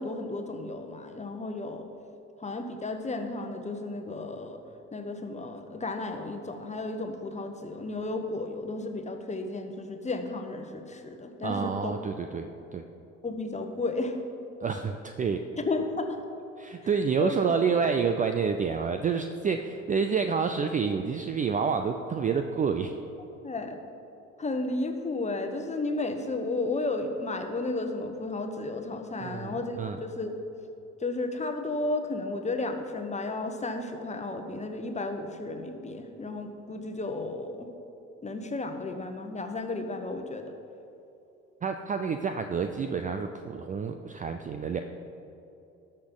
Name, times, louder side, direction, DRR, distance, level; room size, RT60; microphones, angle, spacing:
voice 1, 0.0-1.9 2.4-4.6 4.9-11.9 13.2-14.2 15.6-16.2 17.2-17.4 23.4-23.8 24.4-30.3 31.0-37.7 38.2-40.5, left 2 dB, 15° left, 5 dB, 1.2 m, -33 dB
voice 2, 11.4-12.8 14.6-15.5 16.6-22.9 29.2-30.0 41.6-44.8, right 6 dB, 20° right, 7 dB, 0.5 m, -28 dB
18.5 x 6.5 x 3.9 m, 2.8 s
figure-of-eight pair, 60°, 39 cm